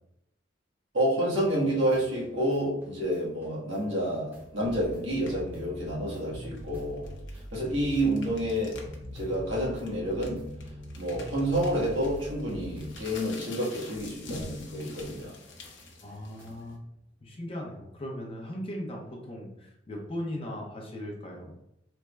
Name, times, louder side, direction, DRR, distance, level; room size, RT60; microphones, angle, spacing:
voice 1, 0.9-7.1 7.5-8.8 9.1-10.4 11.0-15.3, right 1 dB, 80° right, -6 dB, 1.1 m, -29 dB
sound 1, 1.4-13.7 14.0-16.7, equal, 10° right, 0.7 m, -44 dB
sound 2, 5.1-5.5 6.4-9.0 9.3-9.4 9.8-16.7, left 2 dB, 70° left, 0.6 m, -46 dB
voice 2, 16.0-16.8 17.2-21.5, left 1 dB, 30° left, -1 dB, 0.5 m, -38 dB
3.3 x 2.0 x 3.3 m, 0.85 s
head